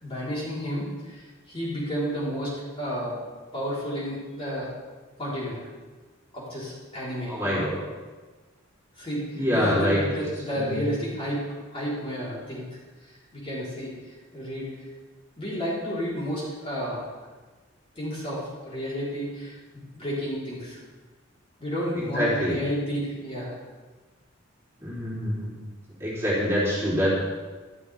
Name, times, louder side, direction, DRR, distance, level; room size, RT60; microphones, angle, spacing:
voice 1, 0.0-3.2 3.5-4.7 5.2-5.6 6.3-7.6 9.0-11.5 11.7-12.8 13.3-13.9 14.3-14.8 15.4-17.1 18.0-20.8 21.6-23.6, equal, 25° left, -7 dB, 4.2 m, -31 dB
voice 2, 7.3-7.7 9.3-10.0 10.5-10.8 22.0-22.5 24.8-25.5 26.0-27.1, equal, 15° right, -8 dB, 3.6 m, -25 dB
14.0 x 12.5 x 3.6 m, 1.3 s
head